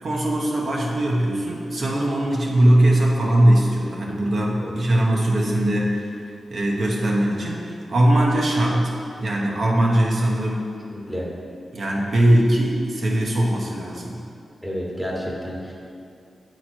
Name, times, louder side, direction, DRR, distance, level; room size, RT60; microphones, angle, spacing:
voice 1, 0.0-6.1 6.5-8.9 9.2-10.7 11.7-14.2, right 1 dB, 60° right, -3 dB, 0.9 m, -20 dB
voice 2, 10.9-11.3 14.6-15.7, equal, 5° left, -4 dB, 1.2 m, -30 dB
7.5 x 3.0 x 4.3 m, 2.5 s
cardioid pair, 60°, 0 cm